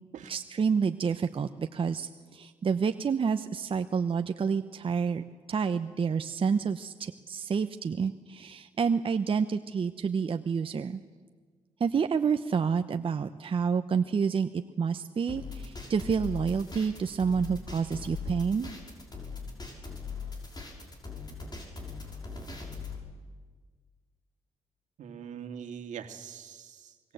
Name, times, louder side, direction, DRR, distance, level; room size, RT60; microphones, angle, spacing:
voice 1, 0.3-11.0 11.8-18.7, right 6 dB, 45° right, 8 dB, 0.9 m, -29 dB
sound 1, 15.3-23.0, left 5 dB, 35° left, 5.9 m, -40 dB
voice 2, 25.0-27.1, right 8 dB, 75° right, 6 dB, 2.1 m, -43 dB
24.5 x 21.5 x 8.0 m, 1.5 s
cardioid pair, 65°, 13 cm